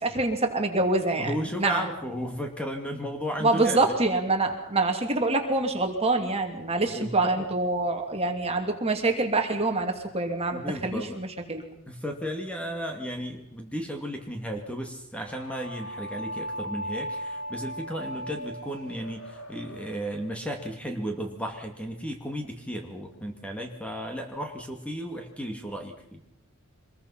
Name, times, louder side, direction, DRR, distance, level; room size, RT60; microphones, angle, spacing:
voice 1, 0.0-1.9 3.4-11.6, right 2 dB, 30° right, 4 dB, 2.8 m, -26 dB
voice 2, 1.2-3.9 7.0-7.5 10.5-11.2 11.9-26.2, equal, 5° left, 3 dB, 2.3 m, -34 dB
sound 1, 15.2-20.4, equal, 65° left, 3.7 m, -37 dB
25.5 x 21.0 x 5.8 m, 0.79 s
head